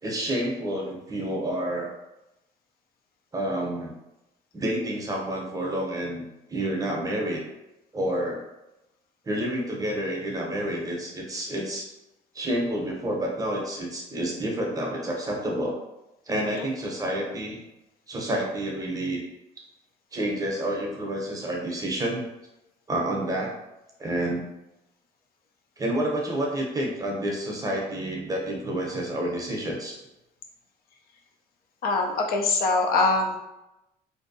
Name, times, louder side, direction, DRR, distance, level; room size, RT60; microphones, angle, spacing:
voice 1, 0.0-1.9 3.3-3.9 4.5-7.4 7.9-8.4 9.2-11.9 12.3-15.8 16.3-17.6 18.1-19.2 20.1-22.2 22.9-23.6 24.0-24.4 25.8-30.0, right 1 dB, 20° right, -1 dB, 0.7 m, -29 dB
voice 2, 31.8-33.4, left 3 dB, 65° left, 1 dB, 0.4 m, -23 dB
2.6 x 2.2 x 2.6 m, 0.95 s
cardioid pair, 110°, 17 cm